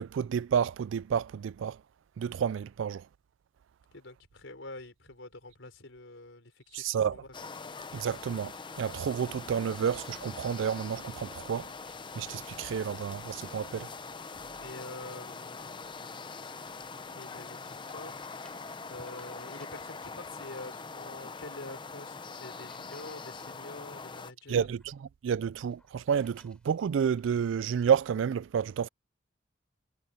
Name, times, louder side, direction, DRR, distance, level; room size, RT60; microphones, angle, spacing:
voice 1, 0.0-1.8 2.2-3.0 6.7-7.2 7.9-8.5 8.8-11.7 12.2-13.9 24.5-24.8 25.2-28.9, right 7 dB, 75° right, 0.3 m, -30 dB
voice 2, 3.9-7.3 14.6-16.1 17.1-18.4 18.9-24.7, left 2 dB, 80° left, 4.1 m, -46 dB
sound 1, 7.3-24.3, left 4 dB, 25° left, 0.7 m, -43 dB
sound 2, 19.0-20.5 21.8-22.1 22.5-23.8 24.0-25.0 25.6-27.4, left 1 dB, 5° left, 5.1 m, -63 dB
head